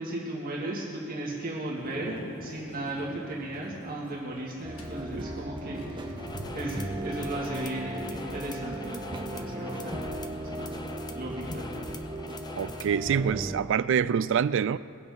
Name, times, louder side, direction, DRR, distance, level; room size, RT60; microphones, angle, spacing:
voice 1, 0.0-6.1 6.5-10.8 11.1-12.0, right 1 dB, 45° right, -4 dB, 1.9 m, -36 dB
Thunder, 1.7-7.9, left 1 dB, 75° left, 1.4 m, -45 dB
sound 1, 4.6-13.6, right 1 dB, 25° right, 1.0 m, -37 dB
sound 2, 6.2-13.0, left 3 dB, 20° left, 0.6 m, -44 dB
voice 2, 12.6-14.8, right 7 dB, 60° right, 17 dB, 0.3 m, -25 dB
21.0 x 7.1 x 5.4 m, 2.5 s
head